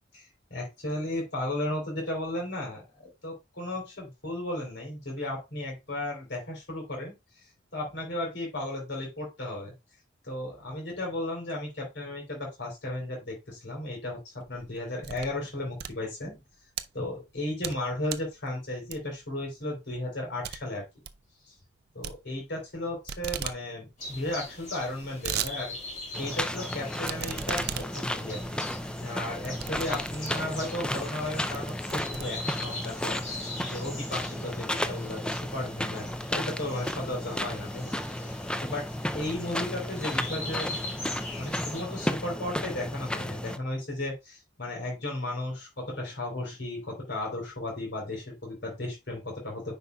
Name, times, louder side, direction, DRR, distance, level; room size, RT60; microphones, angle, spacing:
voice 1, 0.1-7.2 7.7-9.7 10.2-16.4 16.9-20.8 21.5-21.6 22.0-25.7 26.2-28.6 29.0-38.9 39.1-40.7 41.4-49.8, left 1 dB, 65° left, 0 dB, 3.6 m, -35 dB
sound 1, 14.4-15.4 15.7-16.8 17.3-17.8 18.1-18.4 18.9-19.3 19.7-19.8 20.1-20.2 20.4-20.6 20.9-21.2 22.0-22.8 23.1-23.6 23.9-24.0 24.2-24.3 24.8-25.5 26.0-26.1 27.0-30.5 31.1-31.2 31.5-32.8, right 9 dB, 55° right, 0.5 m, -37 dB
sound 2, 24.0-41.8, left 2 dB, 40° left, 4.6 m, -42 dB
sound 3, 26.1-43.6, left 1 dB, 5° left, 0.4 m, -33 dB
9.5 x 5.5 x 2.3 m, 0.22 s
head